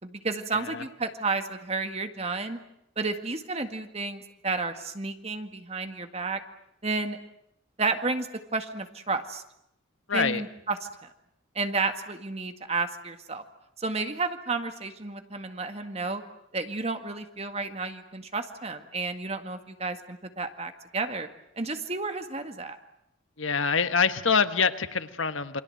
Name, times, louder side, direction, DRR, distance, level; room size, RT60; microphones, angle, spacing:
voice 1, 0.0-2.6 3.0-6.4 6.8-7.2 7.8-9.4 10.1-11.1 11.6-13.4 13.8-16.2 16.5-21.3 21.6-22.8, right 3 dB, 30° right, 7 dB, 1.9 m, -31 dB
voice 2, 0.5-0.8 10.1-10.4 23.4-25.6, left 5 dB, 80° left, 10 dB, 1.4 m, -25 dB
28.5 x 24.0 x 7.9 m, 0.79 s
head